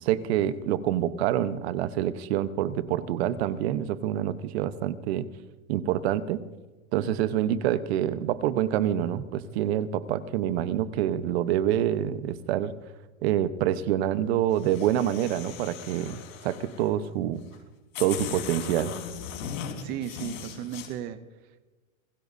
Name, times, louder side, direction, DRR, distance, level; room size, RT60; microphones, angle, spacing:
voice 1, 0.0-5.3 5.7-6.4 6.9-12.7 13.2-17.4 18.0-18.9, right 11 dB, 50° right, 13 dB, 1.1 m, -26 dB
sound 1, 14.5-16.9 17.5-17.6 17.9-20.9, left 7 dB, 70° left, 4.5 m, -38 dB
voice 2, 19.8-21.6, right 11 dB, 20° right, 11 dB, 0.6 m, -36 dB
27.0 x 16.0 x 2.7 m, 1.2 s
supercardioid pair, 150°, 42 cm